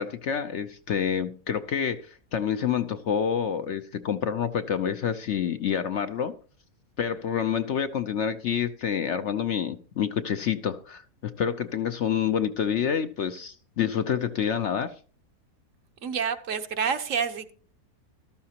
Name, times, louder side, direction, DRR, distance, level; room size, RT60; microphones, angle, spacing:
voice 1, 0.0-6.3 7.0-14.9, left 8 dB, 60° left, 0.8 m, -28 dB
voice 2, 16.0-17.5, right 6 dB, 60° right, 1.2 m, -28 dB
14.5 x 12.5 x 2.9 m
omnidirectional pair, 1.6 m